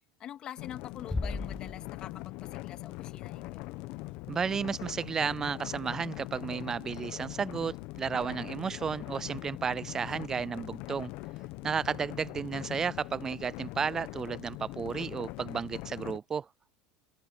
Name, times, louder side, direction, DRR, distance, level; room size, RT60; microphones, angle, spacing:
voice 1, 0.2-3.7, left 10 dB, 45° left, 3.0 m, -45 dB
sound 1, 0.6-16.2, left 20 dB, 65° left, 1.1 m, -42 dB
Bass drum, 1.1-2.5, left 2 dB, 10° left, 1.0 m, -36 dB
voice 2, 4.3-11.1 11.6-16.5, right 6 dB, 25° right, 0.4 m, -33 dB
supercardioid pair, 110°, 2 cm